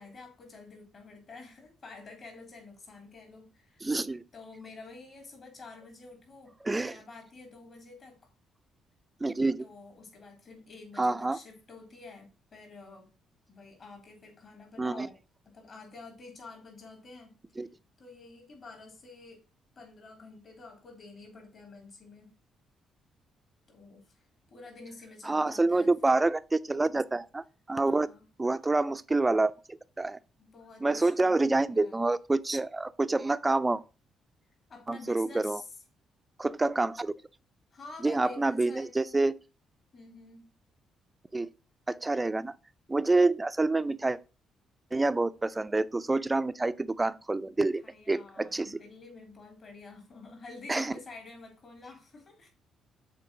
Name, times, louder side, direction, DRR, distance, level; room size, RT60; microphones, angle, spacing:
voice 1, 0.0-3.8 4.3-6.6 6.8-8.3 9.6-13.1 13.5-15.2 15.4-17.4 18.0-19.4 19.7-22.3 23.7-26.2 27.8-28.2 30.4-32.0 34.7-35.7 37.7-39.3 39.9-40.5 47.4-52.5, left 3 dB, 45° left, 3.3 m, -49 dB
voice 2, 3.8-4.2 6.6-7.0 9.2-9.7 11.0-11.4 14.8-15.1 17.6-17.7 25.2-26.4 26.6-28.1 28.4-30.2 30.8-33.8 34.9-35.6 36.4-37.1 38.0-39.4 41.3-41.5 41.9-42.5 42.9-44.2 44.9-48.8 50.7-50.9, right 2 dB, 15° right, 0.5 m, -27 dB
6.8 x 4.4 x 6.1 m
cardioid pair, 105°, 0 cm